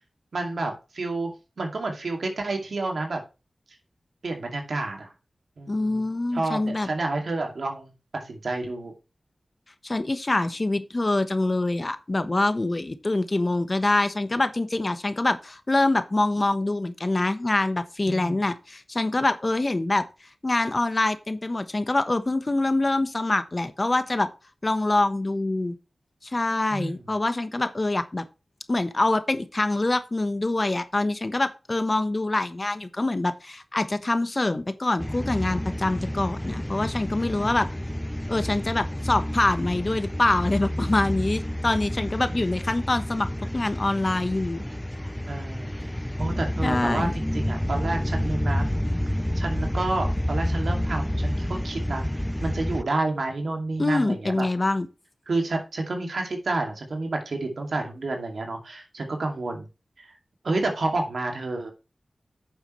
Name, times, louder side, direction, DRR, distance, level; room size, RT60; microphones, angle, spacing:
voice 1, 0.3-1.3 1.6-3.2 4.2-5.1 5.6-6.0 6.3-8.9 18.1-18.4 26.7-27.0 42.3-42.4 45.3-45.9 46.2-48.7 49.4-54.5 55.3-59.7 60.0-60.2 60.4-61.7, right 2 dB, 80° right, 2.4 m, -30 dB
voice 2, 5.7-6.9 9.8-20.0 20.4-24.3 24.6-25.8 26.2-28.3 28.7-37.7 38.3-43.3 43.5-44.7 46.6-47.1 53.8-54.9, left 2 dB, 40° left, 1.1 m, -25 dB
sound 1, 35.0-52.8, left 1 dB, 10° left, 0.5 m, -29 dB
9.5 x 7.1 x 3.2 m
cardioid pair, 50°, 0 cm